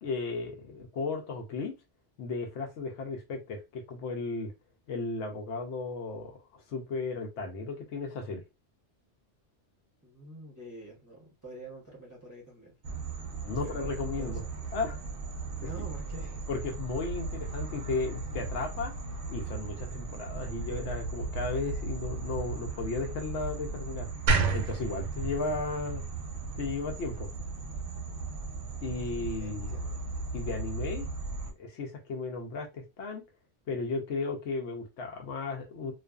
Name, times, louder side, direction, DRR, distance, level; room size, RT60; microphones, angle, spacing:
voice 1, 0.0-1.7 2.2-4.5 4.9-8.4 13.4-14.4 14.7-15.0 16.5-18.9 19.3-24.1 24.5-26.0 26.6-27.3 28.8-29.7 30.3-31.1 31.6-33.2 33.7-35.9, left 3 dB, 75° left, 0.9 m, -35 dB
voice 2, 10.0-12.7 13.5-14.4 15.5-16.4 29.4-30.0, right 1 dB, 20° right, 0.7 m, -47 dB
sound 1, 12.8-31.5, right 3 dB, 55° right, 0.8 m, -37 dB
sound 2, 24.3-27.4, right 4 dB, 85° right, 0.9 m, -30 dB
2.4 x 2.3 x 2.2 m
omnidirectional pair, 1.2 m